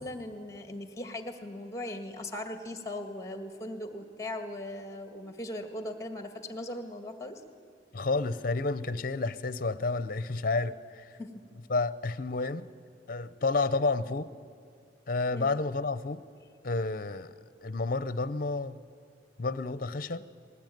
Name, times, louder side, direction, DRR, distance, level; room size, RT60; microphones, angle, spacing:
voice 1, 0.0-7.4 11.2-11.3 15.3-15.6, left 1 dB, 15° left, 7 dB, 1.9 m, -39 dB
voice 2, 7.9-11.2 11.7-12.7 13.1-14.3 15.1-16.2 16.6-18.8 19.4-20.3, left 3 dB, 50° left, 15 dB, 0.8 m, -30 dB
20.5 x 18.5 x 9.4 m, 2.2 s
head